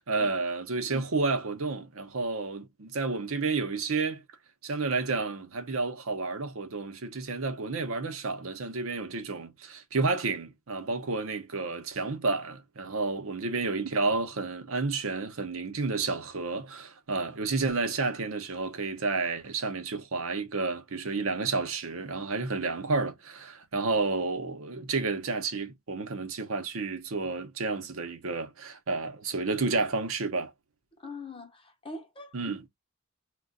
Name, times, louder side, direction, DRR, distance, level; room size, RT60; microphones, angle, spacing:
voice 1, 0.0-4.2 4.6-30.5 32.3-32.6, right 3 dB, 80° right, 0.7 m, -31 dB
voice 2, 31.0-32.5, left 3 dB, 25° left, 0.7 m, -43 dB
2.3 x 2.2 x 3.8 m
head